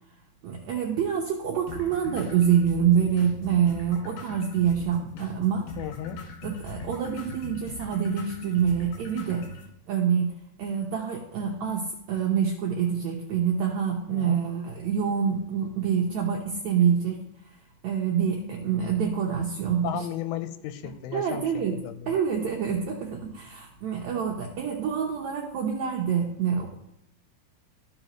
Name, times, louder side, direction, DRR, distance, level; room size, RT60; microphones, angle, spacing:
voice 1, 0.4-5.6 6.4-9.5 9.9-10.3 10.6-17.6 17.8-20.0 20.8-21.8 22.1-26.7, right 7 dB, 75° right, -1 dB, 1.7 m, -26 dB
sound 1, 1.7-9.7, left 2 dB, 75° left, 3.2 m, -41 dB
voice 2, 5.8-6.2 14.1-14.4 19.8-22.2, left 10 dB, 90° left, 10 dB, 2.5 m, -35 dB
14.0 x 4.9 x 3.0 m, 0.83 s
omnidirectional pair, 4.4 m